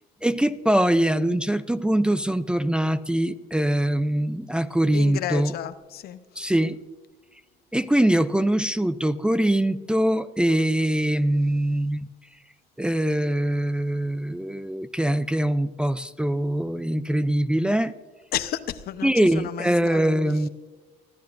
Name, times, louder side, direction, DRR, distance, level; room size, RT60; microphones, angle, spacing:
voice 1, 0.2-5.5 6.4-6.8 7.7-12.1 12.8-17.9 19.0-20.5, right 1 dB, 5° right, 10 dB, 0.4 m, -23 dB
voice 2, 4.9-6.5 18.3-20.0, left 11 dB, 65° left, 11 dB, 0.8 m, -32 dB
29.5 x 12.0 x 2.6 m, 1.3 s
cardioid pair, 110°, 17 cm